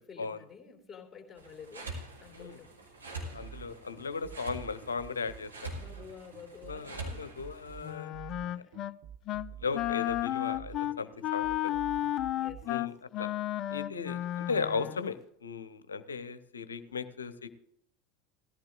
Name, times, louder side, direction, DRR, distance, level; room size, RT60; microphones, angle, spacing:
voice 1, 0.0-2.8 5.8-7.2 8.5-8.8 10.4-10.8 12.3-12.9 16.9-17.0, left 6 dB, 15° left, 2 dB, 2.9 m, -51 dB
sound 1, 1.4-7.9, right 2 dB, 85° right, 3.2 m, -45 dB
voice 2, 3.3-5.7 6.7-8.1 8.4-8.6 9.6-11.7 12.7-13.3 13.7-17.5, left 5 dB, 75° left, 13 dB, 0.8 m, -37 dB
sound 2, 3.3-12.7, right 10 dB, 50° right, 0.9 m, -48 dB
Wind instrument woodwind instrument, 7.8-9.0 9.3-9.5 9.7-15.0, left 14 dB, 40° left, 0.4 m, -33 dB
18.0 x 14.5 x 2.4 m, 0.70 s
figure-of-eight pair, 75°, 0 cm